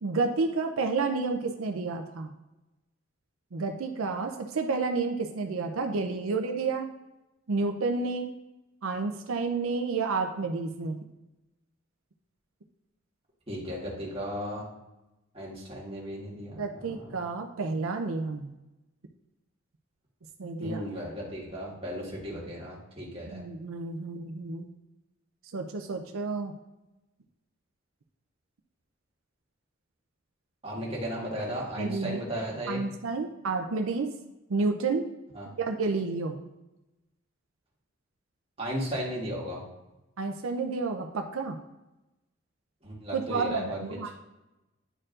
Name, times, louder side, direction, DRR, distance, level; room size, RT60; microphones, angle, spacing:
voice 1, 0.0-2.3 3.5-6.9 7.5-8.3 8.8-11.0 16.6-18.5 20.4-20.8 23.3-24.7 25.5-26.5 31.8-32.2 32.7-34.1 34.5-35.1 35.6-36.4 40.2-41.6 43.1-44.1, right 4 dB, 90° right, 5 dB, 0.6 m, -30 dB
voice 2, 13.5-14.7 15.3-17.1 20.6-23.4 30.6-32.8 35.4-35.5 38.6-39.6 42.8-43.8, equal, 30° right, -4 dB, 1.7 m, -35 dB
10.0 x 4.5 x 2.5 m, 0.98 s
head